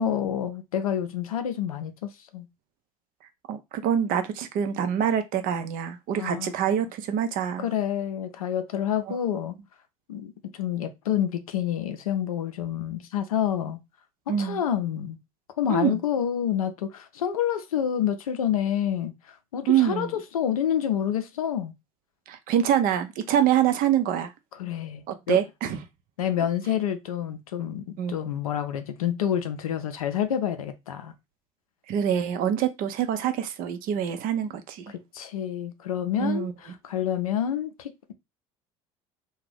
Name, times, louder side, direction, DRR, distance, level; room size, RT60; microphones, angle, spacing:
voice 1, 0.0-2.5 6.2-6.5 7.6-9.5 10.1-13.8 14.3-15.2 15.6-21.7 24.6-25.4 26.2-31.1 35.1-36.5 36.8-38.1, left 9 dB, 85° left, 0.4 m, -28 dB
voice 2, 3.5-7.7 9.1-9.2 14.3-14.6 15.7-16.0 19.7-20.1 22.3-24.3 25.1-25.8 28.0-28.2 31.9-34.9 36.2-36.5, right 9 dB, 55° right, 0.6 m, -25 dB
2.5 x 2.2 x 3.3 m
hypercardioid pair, 70°, 18 cm